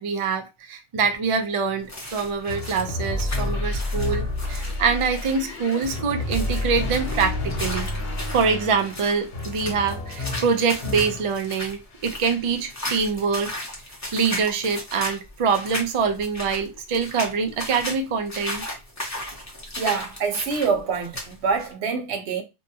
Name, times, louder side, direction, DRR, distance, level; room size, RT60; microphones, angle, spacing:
voice 1, 0.0-7.9 8.3-13.5 14.1-18.8, right 5 dB, 55° right, 0.3 m, -25 dB
steps on wet area, 1.8-21.7, left 1 dB, 20° left, 0.7 m, -36 dB
sound 1, 2.5-11.6 11.9-12.8, left 2 dB, 70° left, 1.0 m, -30 dB
voice 2, 19.8-22.4, right 5 dB, 80° right, 0.9 m, -25 dB
2.7 x 2.2 x 2.6 m
omnidirectional pair, 1.1 m